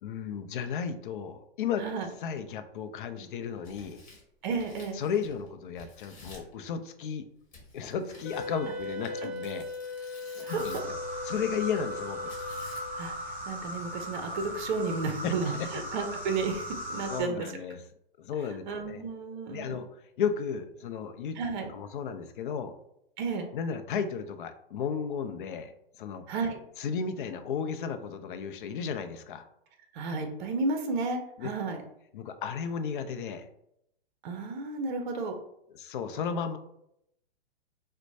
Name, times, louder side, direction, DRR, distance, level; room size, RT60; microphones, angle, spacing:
voice 1, 0.0-1.9 2.2-4.0 4.9-7.3 7.7-9.7 10.0-10.1 10.4-10.8 11.2-12.3 15.2-15.7 17.1-17.8 18.2-19.0 19.5-19.9 20.2-21.4 21.7-22.7 23.5-25.7 26.0-26.2 26.8-29.4 31.4-31.5 32.1-33.5 35.7-36.6, left 6 dB, 55° left, 9 dB, 0.5 m, -34 dB
voice 2, 1.8-2.1 4.4-5.0 10.4-10.6 13.0-17.5 18.7-19.8 21.4-21.7 23.2-23.5 26.3-26.6 29.9-31.8 34.2-35.3, right 4 dB, 50° right, 5 dB, 0.6 m, -32 dB
Tearing, 3.5-5.5 5.8-6.5 7.5-11.0 12.3-13.1, left 2 dB, 25° left, 1.3 m, -52 dB
Wind instrument woodwind instrument, 8.2-13.4, left 2 dB, 85° left, 1.0 m, -39 dB
sound 1, 10.5-17.2, equal, 5° right, 0.4 m, -38 dB
4.3 x 2.1 x 2.6 m, 0.76 s
hypercardioid pair, 135°, 31 cm